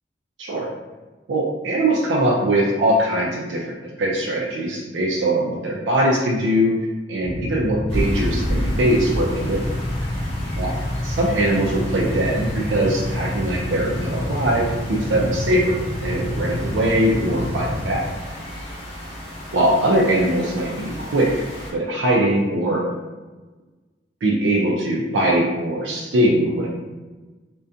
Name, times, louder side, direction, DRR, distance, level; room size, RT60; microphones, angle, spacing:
voice 1, 1.3-6.7 7.1-9.6 10.6-10.7 11.0-15.8 16.0-18.0 19.5-21.3 21.7-22.8 24.2-26.7, right 1 dB, 90° right, -3 dB, 0.4 m, -21 dB
Motorcycle / Idling, 7.2-18.0, left 1 dB, 75° left, 0.4 m, -28 dB
sound 1, 7.9-21.7, equal, 30° left, 0.7 m, -31 dB
2.4 x 2.2 x 2.5 m, 1.3 s
head